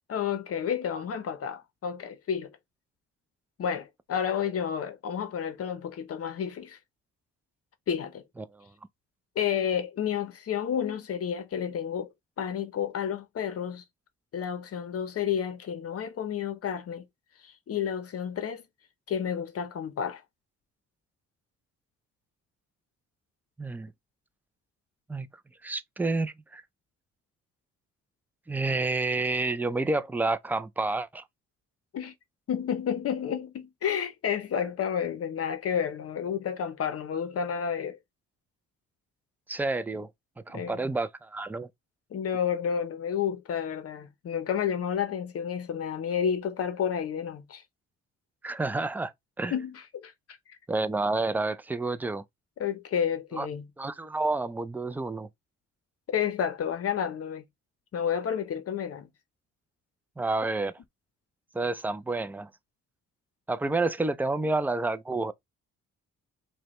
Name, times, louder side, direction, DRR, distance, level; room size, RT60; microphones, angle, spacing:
voice 1, 0.1-2.5 3.6-6.8 7.9-8.2 9.4-12.1 12.4-13.8 14.3-17.0 17.4-18.6 19.1-20.2 31.9-32.1 32.5-38.0 40.5-40.8 42.1-47.6 49.5-50.6 52.6-53.7 56.1-57.4 57.9-59.1, left 8 dB, 50° left, 0.7 m, -31 dB
voice 2, 23.6-23.9 25.1-25.3 25.6-26.6 28.5-31.2 39.5-40.1 40.5-41.7 48.4-49.1 49.4-49.5 50.7-52.2 53.4-53.5 53.8-55.3 60.2-60.7 61.5-62.5 63.5-65.3, right 3 dB, 5° right, 0.3 m, -29 dB
4.7 x 2.2 x 3.0 m
cardioid pair, 90°, 30 cm